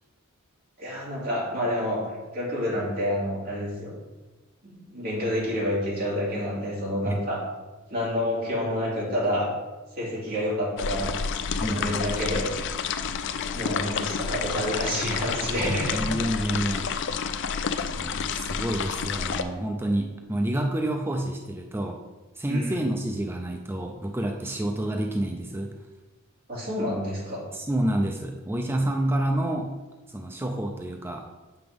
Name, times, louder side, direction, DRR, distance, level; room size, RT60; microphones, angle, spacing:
voice 1, 0.8-3.9 4.6-7.4 7.9-9.5 9.9-11.1 11.7-12.5 13.5-16.1 22.5-22.9 26.5-27.4, equal, 45° right, -5 dB, 2.6 m, -28 dB
sound 1, 10.8-19.4, left 6 dB, 55° left, 0.4 m, -30 dB
voice 2, 11.6-12.0 15.5-16.9 18.0-22.0 22.4-25.7 27.5-29.8 30.1-31.3, right 1 dB, 10° right, 2 dB, 0.4 m, -28 dB
7.8 x 5.9 x 3.6 m, 1.2 s
head